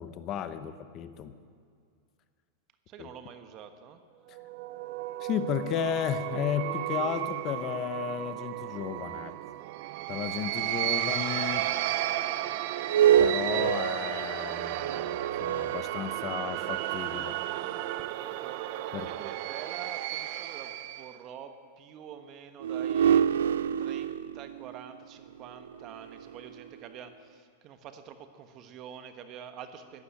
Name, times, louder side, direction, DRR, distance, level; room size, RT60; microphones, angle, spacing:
voice 1, 0.0-1.4 3.0-3.1 4.3-4.4 5.2-9.4 10.1-11.7 13.2-17.4 18.9-19.1, left 9 dB, 35° left, 12 dB, 0.9 m, -34 dB
voice 2, 2.9-4.0 18.2-18.6 18.9-23.2 23.8-30.0, right 8 dB, 40° right, 9 dB, 1.2 m, -46 dB
sound 1, 4.3-21.1, right 14 dB, 55° right, 0.7 m, -34 dB
sound 2, 12.7-16.6 17.3-17.4 22.6-26.9, right 9 dB, 90° right, 0.3 m, -27 dB
12.0 x 11.0 x 8.6 m, 2.2 s
supercardioid pair, 135°, 0 cm